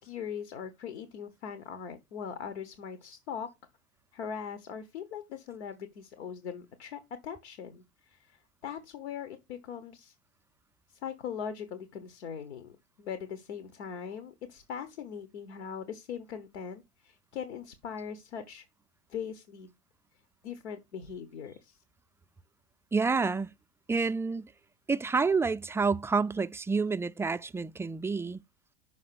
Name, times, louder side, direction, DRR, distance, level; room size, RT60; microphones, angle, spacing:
voice 1, 0.0-3.5 4.1-10.1 10.9-18.7 19.1-19.7 20.4-21.8 23.9-24.1, left 7 dB, 80° left, 1.3 m, -40 dB
voice 2, 22.9-23.5 23.9-24.4 24.9-28.4, right 4 dB, 10° right, 0.3 m, -28 dB
6.2 x 5.0 x 5.8 m
hypercardioid pair, 95°, 33 cm